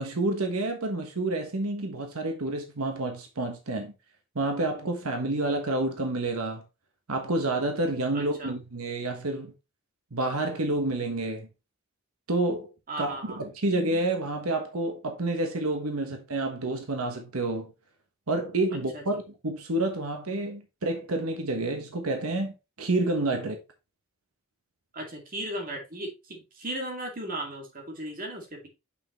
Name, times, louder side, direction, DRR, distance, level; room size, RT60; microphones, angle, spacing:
voice 1, 0.0-3.9 4.3-6.6 7.1-9.5 10.1-11.5 12.3-12.7 13.0-17.7 18.3-22.5 22.8-23.6, right 2 dB, 90° right, 1.3 m, -29 dB
voice 2, 8.1-8.5 12.9-13.4 18.9-19.2 24.9-28.7, right 1 dB, 40° right, 2.2 m, -36 dB
6.8 x 5.7 x 3.0 m
head